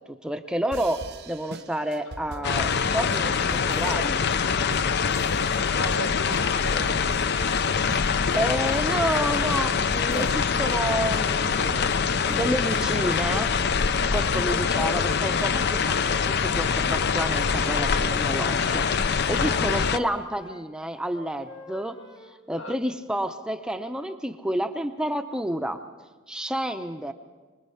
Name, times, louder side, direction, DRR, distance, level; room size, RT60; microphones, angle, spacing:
voice 1, 0.0-4.2 7.9-12.0 12.2-13.5 14.1-22.0 22.2-25.8 26.3-27.1, right 1 dB, 5° right, 7 dB, 0.6 m, -30 dB
sound 1, 0.7-13.6, right 2 dB, 50° right, 0.8 m, -42 dB
voice 2, 2.1-2.5 5.8-6.9 10.1-10.3 14.1-14.4 19.3-19.6 22.6-22.8, left 1 dB, 70° left, 6 dB, 1.6 m, -36 dB
sound 2, 2.4-20.0, left 6 dB, 50° left, 0.5 m, -24 dB
Wind instrument woodwind instrument, 17.3-22.4, left 3 dB, 25° left, 1.2 m, -47 dB
24.5 x 20.5 x 5.7 m, 1.3 s
head